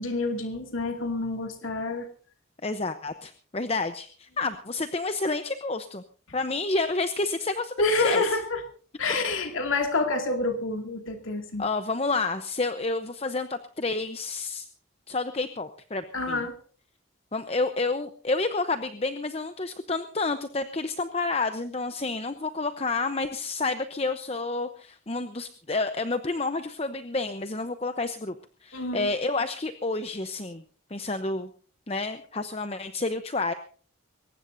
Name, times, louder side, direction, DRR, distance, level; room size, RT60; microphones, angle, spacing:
voice 1, 0.0-2.1 7.8-8.6 9.0-11.6 16.1-16.6 28.7-29.1, left 3 dB, 80° left, 4 dB, 2.4 m, -27 dB
voice 2, 2.6-6.0 6.3-8.2 11.6-14.7 15.1-16.4 17.3-28.3 28.6-30.6 30.9-31.5 31.9-33.5, left 3 dB, 30° left, 9 dB, 0.8 m, -29 dB
22.5 x 19.0 x 2.7 m, 0.43 s
head